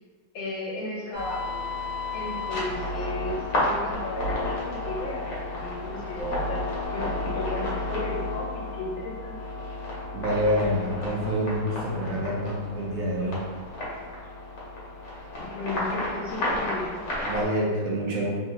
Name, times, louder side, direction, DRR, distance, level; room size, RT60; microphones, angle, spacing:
voice 1, 0.3-1.6 2.1-9.4 15.4-16.9, left 2 dB, 75° left, -6 dB, 1.4 m, -35 dB
sound 1, 1.1-17.4, left 2 dB, 60° left, 1.2 m, -32 dB
voice 2, 10.1-13.4 17.2-18.4, equal, 65° right, -3 dB, 0.8 m, -27 dB
3.4 x 2.8 x 2.8 m, 1.5 s
omnidirectional pair, 2.1 m